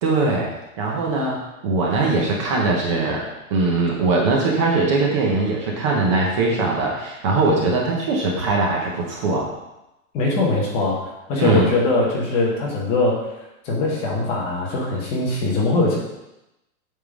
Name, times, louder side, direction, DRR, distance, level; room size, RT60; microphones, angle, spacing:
voice 1, 0.0-3.2 3.5-9.5 11.4-11.7, right 3 dB, 25° right, -2 dB, 0.7 m, -21 dB
voice 2, 10.1-13.2 13.6-16.0, left 2 dB, 15° left, -3 dB, 0.9 m, -21 dB
8.7 x 3.7 x 6.0 m, 0.93 s
supercardioid pair, 180°, 41 cm